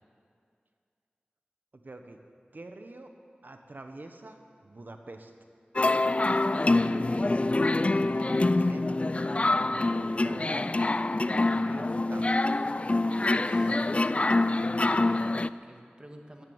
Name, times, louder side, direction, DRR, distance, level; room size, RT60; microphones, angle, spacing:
voice 1, 1.7-2.2 2.5-3.1 3.4-5.3 6.6-7.5 8.0-9.0 9.5-10.7 11.3-12.7, right 2 dB, 60° right, 6 dB, 1.1 m, -45 dB
sound 1, 5.8-15.5, left 2 dB, 35° left, 0.3 m, -25 dB
voice 2, 13.4-14.1 14.8-16.4, equal, 25° right, 2 dB, 1.8 m, -50 dB
13.5 x 11.0 x 7.9 m, 2.3 s
wide cardioid pair, 55°, 4 cm